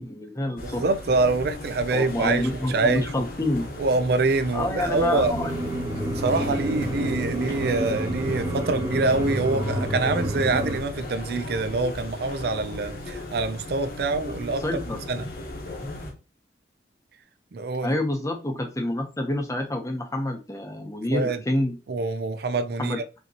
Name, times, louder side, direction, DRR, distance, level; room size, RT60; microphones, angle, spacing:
voice 1, 0.0-0.8 1.9-3.7 4.5-5.5 14.6-15.4 15.8-16.1 17.8-21.8 22.8-23.2, left 1 dB, 15° left, 0.7 m, -28 dB
sound 1, 0.6-16.1, left 1 dB, 50° left, 1.0 m, -37 dB
voice 2, 0.6-3.3 3.8-5.3 6.0-14.6 15.1-15.3 17.5-18.0 21.1-21.4 21.9-23.0, right 3 dB, 55° right, 0.4 m, -25 dB
sound 2, 4.9-10.8, right 1 dB, 20° right, 0.8 m, -29 dB
5.4 x 2.9 x 2.8 m
head